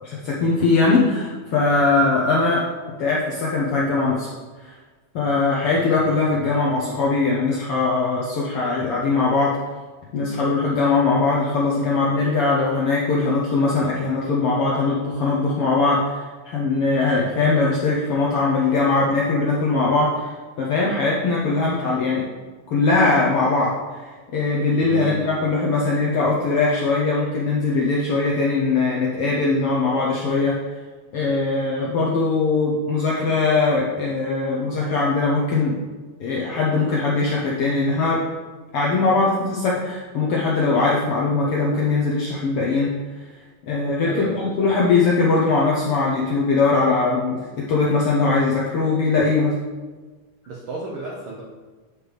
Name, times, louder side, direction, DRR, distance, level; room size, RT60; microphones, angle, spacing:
voice 1, 0.0-2.6 3.0-4.3 4.6-4.7 5.1-9.6 10.1-22.2 22.7-30.6 31.1-35.8 36.2-38.2 38.7-42.9 43.7-47.4 47.7-49.6, left 3 dB, 70° left, -4 dB, 1.3 m, -21 dB
voice 2, 24.8-25.3 44.1-44.7 50.5-51.4, right 1 dB, 75° right, -3 dB, 1.2 m, -32 dB
9.3 x 4.7 x 3.3 m, 1.4 s
omnidirectional pair, 3.5 m